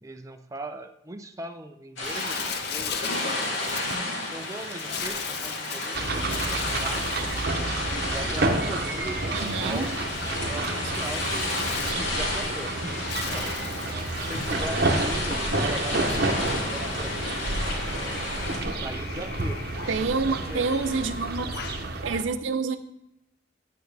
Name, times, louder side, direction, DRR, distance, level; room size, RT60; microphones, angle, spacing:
voice 1, 0.0-7.1 8.1-10.0 10.4-13.5 13.9-17.2 17.9-18.3 18.8-19.6 20.3-20.9, right 2 dB, 15° right, 6 dB, 0.5 m, -40 dB
sound 1, 2.0-18.6, left 2 dB, 85° left, 2.5 m, -32 dB
Bird, 2.0-21.9, left 7 dB, 55° left, 0.7 m, -40 dB
sound 2, 5.9-22.2, right 2 dB, 55° right, 0.9 m, -30 dB
voice 2, 9.3-10.0 19.9-21.5 22.0-22.8, right 4 dB, 80° right, 9 dB, 0.7 m, -27 dB
9.1 x 8.8 x 3.4 m, 0.85 s
head